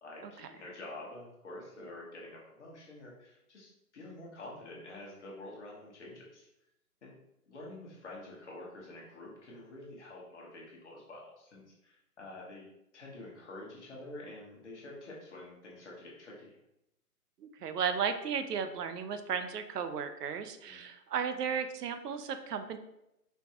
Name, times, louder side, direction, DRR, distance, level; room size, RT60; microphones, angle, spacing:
voice 1, 0.0-6.5 7.0-7.1 7.5-12.6 12.9-16.6 20.6-20.8, left 2 dB, 45° left, -3 dB, 1.1 m, -48 dB
voice 2, 17.4-22.8, right 7 dB, 80° right, 9 dB, 0.5 m, -34 dB
4.3 x 2.3 x 2.8 m, 0.85 s
hypercardioid pair, 155°, 47 cm